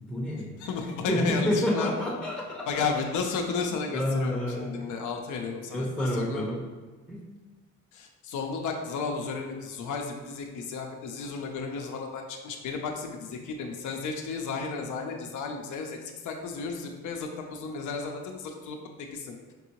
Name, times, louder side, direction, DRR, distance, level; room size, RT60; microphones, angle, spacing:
voice 1, 0.0-0.5 1.1-2.9 3.9-4.7 5.7-6.6 7.1-7.3, left 1 dB, ahead, -4 dB, 0.6 m, -29 dB
voice 2, 0.6-1.9 2.7-6.5 7.9-19.5, left 5 dB, 75° left, 2 dB, 0.6 m, -33 dB
5.3 x 2.7 x 2.9 m, 1.3 s
cardioid pair, 90°, 30 cm